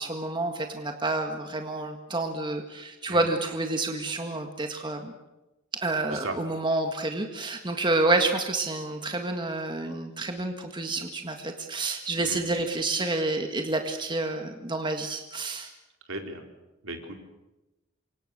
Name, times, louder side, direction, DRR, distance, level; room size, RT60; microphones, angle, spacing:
voice 1, 0.0-5.1 5.7-15.7, right 2 dB, 20° right, 4 dB, 1.8 m, -29 dB
voice 2, 16.1-16.4 16.8-17.2, right 2 dB, 70° right, 3 dB, 4.3 m, -36 dB
28.0 x 25.5 x 6.7 m, 1.0 s
head